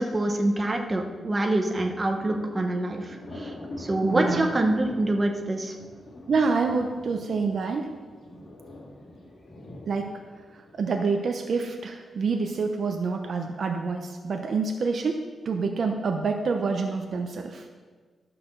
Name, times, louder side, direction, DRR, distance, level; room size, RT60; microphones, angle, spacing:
voice 1, 0.0-5.7, right 1 dB, 20° right, 3 dB, 1.0 m, -26 dB
Thunder, 1.6-11.1, left 1 dB, 50° left, 2.4 m, -43 dB
voice 2, 4.0-4.5 6.3-7.9 9.9-10.2 10.8-15.2 15.4-17.8, right 4 dB, 50° right, 4 dB, 0.8 m, -27 dB
12.0 x 5.9 x 6.6 m, 1.5 s
wide cardioid pair, 160°, 0 cm